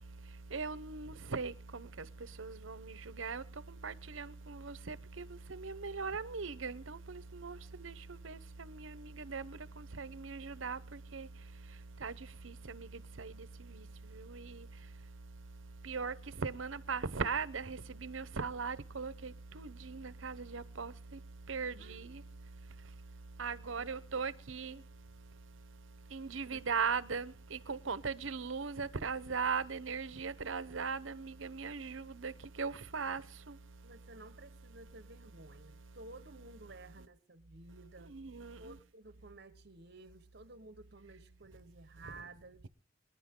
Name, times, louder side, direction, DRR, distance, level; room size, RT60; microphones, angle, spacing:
voice 1, 0.5-1.9 2.4-3.4 3.8-5.2 5.5-7.6 7.8-7.9 8.2-8.4 8.7-9.6 10.0-10.8 11.1-11.3 12.0-12.1 12.4-12.9 13.2-13.3 14.3-14.6 15.8-16.1 16.4-20.9 21.5-22.2 23.4-24.8 26.1-32.3 32.6-33.2 38.1-38.6, right 5 dB, 85° right, 0.9 m, -39 dB
voice 2, 21.8-22.1 23.8-23.9 26.4-26.6 33.8-38.1 38.6-42.7, right 2 dB, 55° right, 1.4 m, -54 dB
26.0 x 11.0 x 3.8 m
head